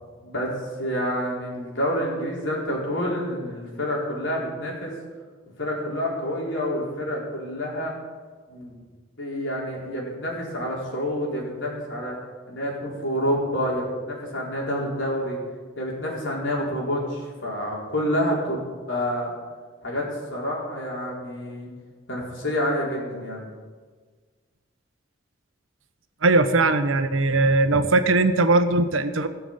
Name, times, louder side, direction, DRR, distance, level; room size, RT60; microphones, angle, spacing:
voice 1, 0.8-4.9 5.6-7.9 8.5-8.8 9.2-12.2 12.5-15.4 15.8-19.3 19.8-21.7 22.1-23.5, equal, 70° left, -3 dB, 4.2 m, -28 dB
voice 2, 26.2-29.3, right 2 dB, 85° right, 9 dB, 1.0 m, -20 dB
17.0 x 7.0 x 7.9 m, 1.5 s
head